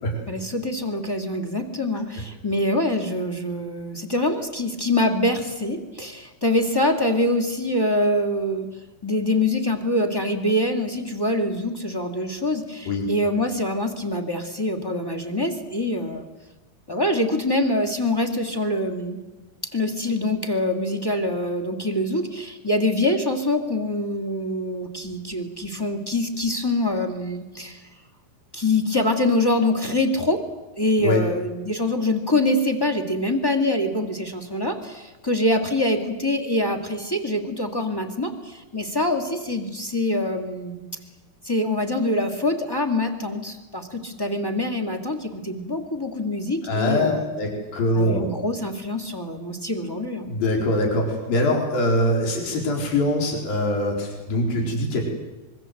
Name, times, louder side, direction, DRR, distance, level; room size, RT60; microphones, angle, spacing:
voice 1, 0.3-8.7 9.0-16.3 16.9-19.2 19.7-27.8 28.5-30.4 30.7-40.8 41.4-47.3 47.9-50.3, left 1 dB, 10° left, 5 dB, 1.1 m, -24 dB
voice 2, 46.7-48.3 50.3-55.1, left 1 dB, 60° left, 1 dB, 5.9 m, -23 dB
25.5 x 23.5 x 7.9 m, 1.1 s
omnidirectional pair, 4.6 m